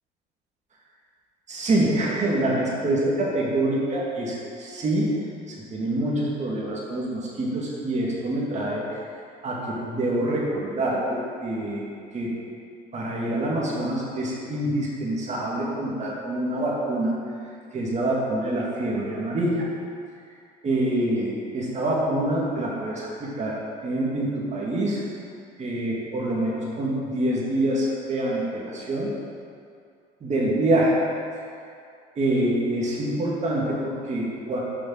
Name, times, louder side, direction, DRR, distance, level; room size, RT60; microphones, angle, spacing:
voice 1, 1.5-8.8 9.4-12.3 12.9-17.1 17.7-19.6 20.6-23.6 23.8-25.0 25.6-29.1 30.2-31.0 32.2-34.6, right 1 dB, 35° right, -4 dB, 2.2 m, -26 dB
6.6 x 6.3 x 6.3 m, 2.4 s
supercardioid pair, 90°, 19 cm